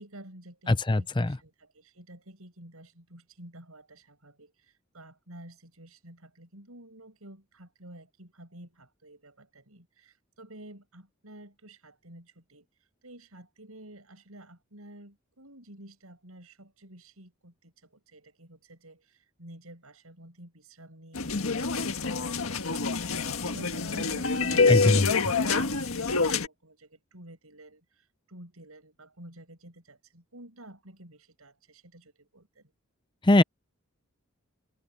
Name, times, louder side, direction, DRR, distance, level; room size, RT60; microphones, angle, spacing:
voice 1, 0.0-32.7, right 1 dB, 85° right, 7.7 m, -50 dB
voice 2, 0.7-1.4 24.7-25.1 33.2-33.4, left 2 dB, 20° left, 0.6 m, -21 dB
sound 1, 21.1-26.5, left 4 dB, 80° left, 1.6 m, -26 dB
head